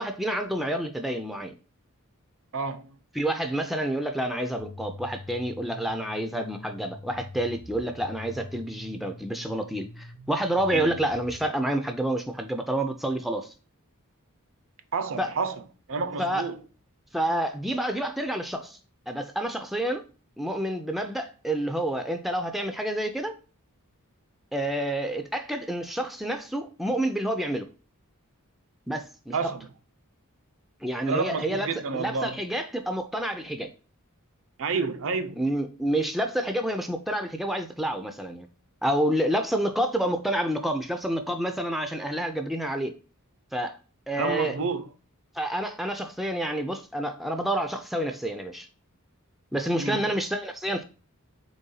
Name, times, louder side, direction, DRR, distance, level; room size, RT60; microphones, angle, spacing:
voice 1, 0.0-1.6 3.2-13.5 15.2-15.3 16.2-16.4 17.1-18.8 19.1-20.0 20.4-23.3 24.5-27.7 28.9-29.5 30.8-31.7 31.9-33.7 35.4-38.5 38.8-42.9 43.5-43.8 44.1-44.6 45.3-48.7 49.5-50.8, right 1 dB, ahead, 0.4 m, -28 dB
voice 2, 2.5-2.9 10.7-10.9 14.9-15.6 15.9-16.6 29.3-29.6 31.1-32.4 34.6-35.4 44.2-44.9 49.8-50.0, right 4 dB, 65° right, 0.5 m, -29 dB
sound 1, 4.6-11.4, left 2 dB, 75° left, 0.8 m, -44 dB
4.1 x 3.5 x 3.7 m
head